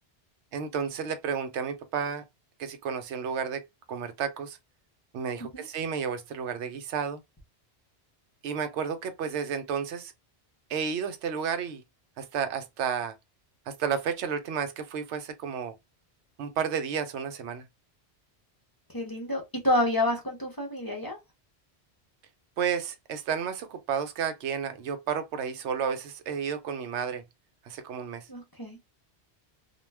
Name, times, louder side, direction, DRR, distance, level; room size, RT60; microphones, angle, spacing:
voice 1, 0.5-2.2 2.6-4.6 5.1-7.2 8.4-10.1 10.7-11.8 12.2-13.1 13.7-15.7 16.4-17.6 22.6-27.2 27.7-28.3, right 7 dB, 85° right, 0.9 m, -32 dB
voice 2, 18.9-21.2 28.3-28.8, left 1 dB, 25° left, 0.5 m, -28 dB
2.3 x 2.2 x 3.2 m
omnidirectional pair, 1.1 m